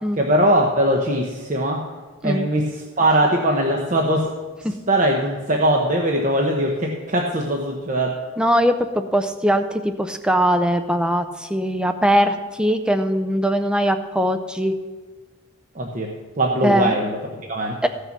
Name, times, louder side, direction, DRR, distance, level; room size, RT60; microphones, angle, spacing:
voice 1, 0.1-1.8 2.2-4.3 4.9-8.2 15.7-17.8, right 1 dB, 40° right, 1 dB, 1.0 m, -21 dB
voice 2, 8.4-14.7 16.6-17.0 17.8-17.9, equal, 5° right, 8 dB, 0.5 m, -20 dB
15.0 x 6.7 x 6.0 m, 1.3 s
head